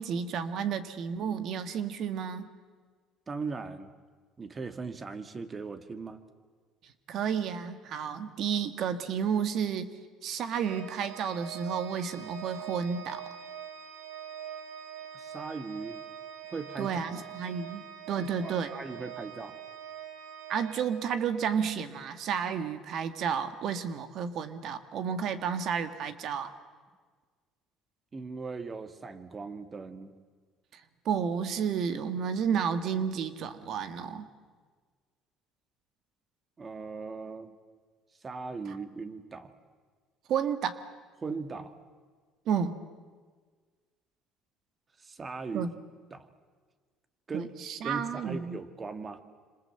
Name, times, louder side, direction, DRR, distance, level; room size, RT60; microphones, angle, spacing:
voice 1, 0.0-2.5 7.1-9.9 10.2-13.2 16.8-18.7 20.5-26.5 30.7-30.8 31.0-34.3 40.3-40.8 42.5-42.8 45.5-45.7 47.3-48.6, right 7 dB, 60° right, 10 dB, 1.6 m, -31 dB
voice 2, 3.3-3.9 4.4-6.2 15.1-16.0 16.5-17.2 18.2-19.6 28.1-30.2 36.6-37.5 38.2-39.5 41.2-41.8 45.0-45.7 46.1-46.3 47.3-47.5 47.8-49.2, right 4 dB, 30° right, 9 dB, 2.0 m, -39 dB
Organ, 10.6-21.5, right 9 dB, 85° right, 3.0 m, -44 dB
27.0 x 26.5 x 7.9 m, 1.5 s
cardioid pair, 105°, 0 cm